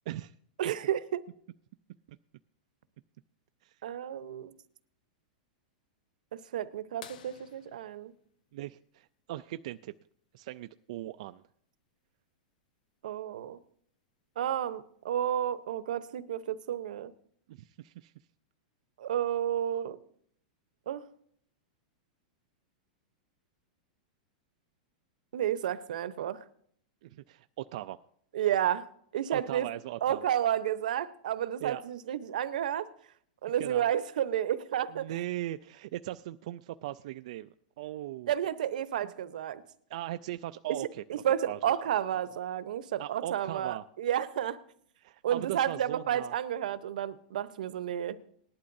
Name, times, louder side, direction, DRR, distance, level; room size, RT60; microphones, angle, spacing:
voice 1, 0.6-1.3 3.8-4.5 6.3-8.1 13.0-13.6 14.4-17.1 19.0-20.0 20.9-21.1 25.3-26.4 28.3-29.7 30.0-32.9 33.4-35.1 38.3-39.6 41.1-44.6 45.2-48.3, right 10 dB, 80° right, 13 dB, 0.8 m, -31 dB
sound 1, 7.0-9.5 11.4-11.5 13.7-13.8 15.5-15.8 16.6-16.7, left 9 dB, 80° left, 0.9 m, -53 dB
voice 2, 8.5-9.9 10.3-11.4 17.5-18.1 27.0-28.0 29.3-30.3 31.6-31.8 33.6-33.9 34.9-38.3 39.9-41.0 41.5-41.6 43.0-43.8 45.0-46.3, right 14 dB, 55° right, 9 dB, 0.4 m, -39 dB
19.0 x 11.5 x 2.7 m, 0.64 s
supercardioid pair, 165°, 4 cm